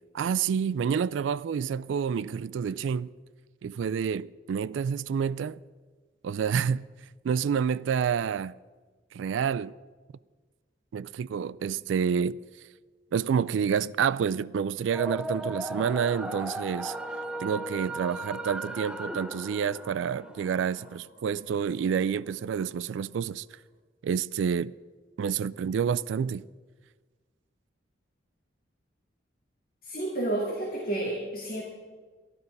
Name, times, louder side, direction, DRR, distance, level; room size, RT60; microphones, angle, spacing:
voice 1, 0.1-3.1 3.6-5.6 6.2-6.9 7.2-8.5 9.1-9.7 10.9-12.4 13.1-17.0 17.4-23.5 24.0-24.7 25.2-26.4, right 7 dB, 85° right, 0.3 m, -28 dB
sound 1, 14.9-21.0, right 1 dB, 5° right, 0.4 m, -37 dB
sound 2, 15.8-23.4, equal, 65° left, 1.4 m, -49 dB
voice 2, 29.8-31.6, right 1 dB, 50° left, 2.4 m, -30 dB
13.0 x 12.0 x 5.3 m
head